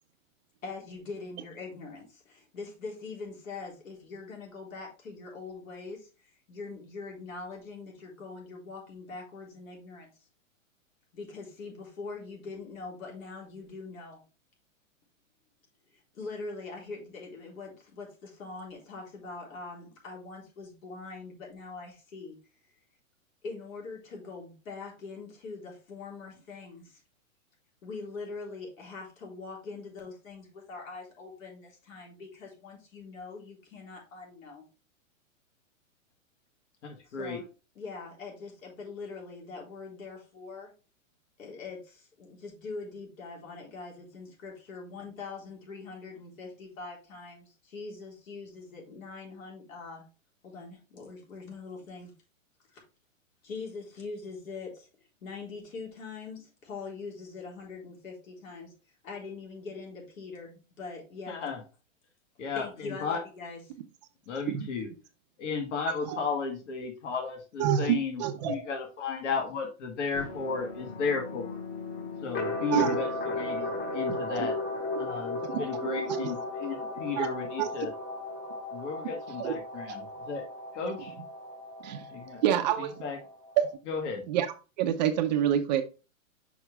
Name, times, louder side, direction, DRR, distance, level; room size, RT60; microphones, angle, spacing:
voice 1, 0.6-10.1 11.1-14.2 15.9-22.4 23.4-27.0 27.8-34.6 37.1-37.5 37.7-40.7 41.4-50.0 50.4-52.1 52.7-52.8 53.4-54.9 55.2-58.7 59.0-61.5 62.5-63.6, left 4 dB, 75° left, -1 dB, 3.9 m, -43 dB
voice 2, 36.8-37.4 61.3-61.6 62.4-62.7 63.0-63.2 64.3-64.9 65.4-71.6 72.2-74.6 75.0-77.9 78.7-80.5 80.7-81.1 82.1-82.4 83.0-83.2 83.9-84.2, left 5 dB, 60° left, 3 dB, 1.9 m, -34 dB
voice 3, 67.6-68.6 72.7-73.0 74.1-74.5 75.4-76.3 77.2-77.3 77.6-77.7 79.4-79.6 79.9-80.0 81.8-82.1 82.4-82.9 83.6-83.7 84.3-85.8, right 10 dB, 35° right, 7 dB, 0.6 m, -28 dB
sound 1, 70.1-83.7, left 2 dB, 30° left, 1.1 m, -36 dB
6.1 x 5.1 x 3.4 m, 0.32 s
hypercardioid pair, 150°, 40 cm